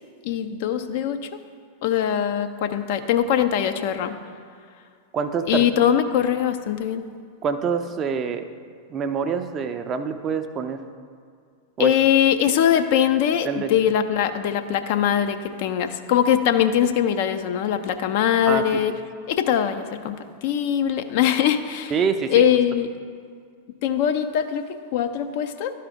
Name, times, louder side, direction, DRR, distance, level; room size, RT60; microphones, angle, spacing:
voice 1, 0.2-1.3 1.8-4.2 5.5-7.0 11.8-18.9 19.3-21.9 22.3-22.9 23.8-25.7, left 9 dB, 50° left, 8 dB, 0.4 m, -22 dB
voice 2, 5.1-5.7 7.4-8.5 8.9-10.8 11.8-11.9 13.5-13.7 18.5-18.8 21.9-22.3, right 6 dB, 30° right, 8 dB, 0.4 m, -26 dB
12.0 x 4.6 x 3.5 m, 2.1 s
figure-of-eight pair, 90°, 0 cm